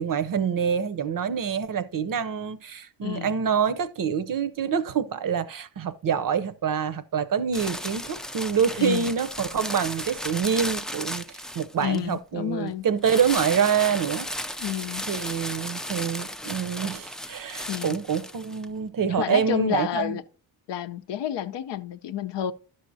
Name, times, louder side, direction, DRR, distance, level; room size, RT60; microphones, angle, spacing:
voice 1, 0.0-14.3 15.1-20.2, right 7 dB, 50° right, 0.6 m, -26 dB
voice 2, 3.0-3.4 8.8-9.1 11.8-12.9 14.6-15.1 17.7-18.0 19.1-20.2 20.7-22.5, left 11 dB, 70° left, 0.6 m, -30 dB
sound 1, 7.5-12.1 13.0-18.6, equal, ahead, 0.3 m, -35 dB
11.0 x 6.3 x 2.7 m
cardioid pair, 65°, 44 cm